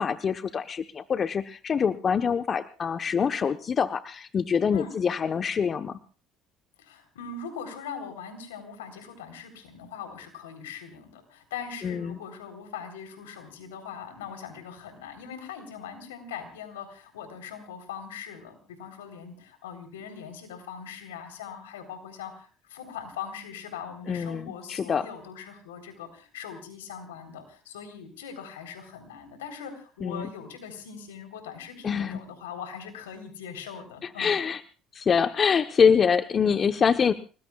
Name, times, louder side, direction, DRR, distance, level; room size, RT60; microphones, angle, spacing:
voice 1, 0.0-6.0 11.8-12.2 24.1-25.1 30.0-30.3 31.8-32.2 34.2-34.6 34.9-37.1, left 6 dB, 40° left, 9 dB, 1.0 m, -25 dB
voice 2, 6.8-34.4, left 7 dB, 90° left, 6 dB, 3.8 m, -41 dB
30.0 x 19.5 x 2.4 m, 0.38 s
hypercardioid pair, 65°, 0 cm